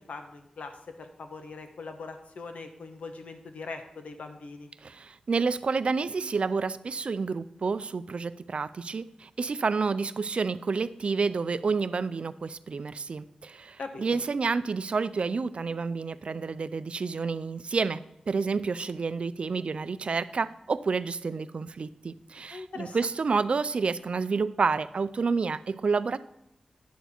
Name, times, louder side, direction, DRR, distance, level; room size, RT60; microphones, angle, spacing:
voice 1, 0.0-4.7 13.8-14.0 22.5-23.0, left 4 dB, 80° left, 6 dB, 1.1 m, -41 dB
voice 2, 4.8-18.0 18.3-26.2, right 4 dB, 55° right, 14 dB, 0.4 m, -29 dB
10.0 x 7.0 x 4.3 m, 0.82 s
wide cardioid pair, 95°, 2 cm